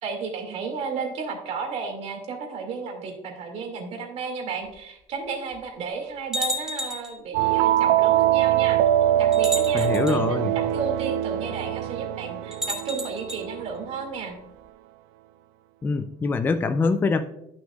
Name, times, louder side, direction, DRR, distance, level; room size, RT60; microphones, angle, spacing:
voice 1, 0.0-8.8 9.2-14.4, right 5 dB, 45° right, 1 dB, 2.3 m, -33 dB
sound 1, 4.7-4.8 5.5-5.6 6.3-7.2 8.3-8.4 9.3-10.2 12.5-13.4, equal, 5° right, 1.1 m, -31 dB
sound 2, 7.3-13.8, right 12 dB, 75° right, 0.5 m, -23 dB
voice 2, 9.7-10.6 15.8-17.2, left 4 dB, 15° left, 9 dB, 0.4 m, -24 dB
11.5 x 6.2 x 2.4 m, 0.79 s
cardioid pair, 160°, 15 cm